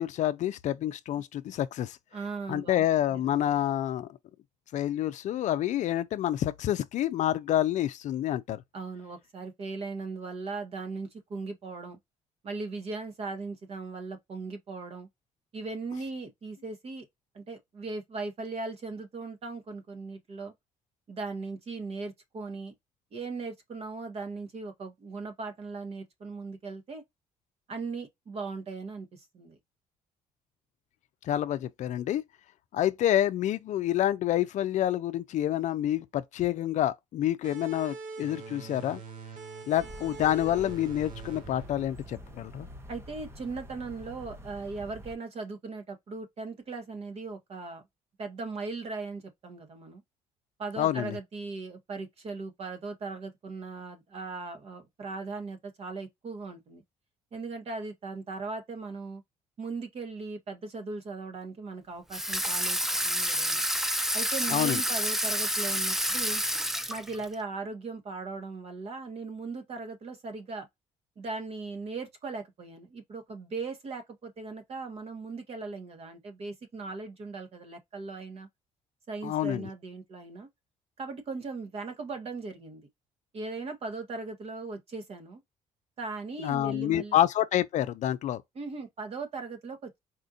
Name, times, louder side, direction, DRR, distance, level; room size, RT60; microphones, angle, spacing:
voice 1, 0.0-2.0 2.5-4.1 4.7-8.6 31.2-32.2 32.7-39.0 39.7-42.7 50.8-51.2 64.5-64.8 79.2-79.7 86.4-88.4, left 12 dB, 60° left, 0.4 m, -28 dB
voice 2, 2.1-2.8 3.1-3.2 8.7-12.0 12.4-15.1 15.5-17.0 17.3-20.5 21.1-22.7 23.1-27.0 27.7-29.6 42.9-47.8 48.2-50.0 50.6-56.8 57.3-59.2 59.6-63.6 64.1-66.4 66.9-70.7 71.2-78.5 79.1-80.5 81.0-82.9 83.3-85.4 86.0-87.1 88.5-90.0, right 3 dB, 45° right, 1.2 m, -38 dB
sound 1, 37.4-42.7, right 4 dB, 70° right, 1.0 m, -44 dB
sound 2, 39.8-45.2, equal, 20° right, 0.8 m, -46 dB
Water tap faucet / Sink (filling or washing), 62.1-67.3, equal, 5° right, 0.4 m, -29 dB
4.3 x 2.6 x 2.4 m
cardioid pair, 100°, 14 cm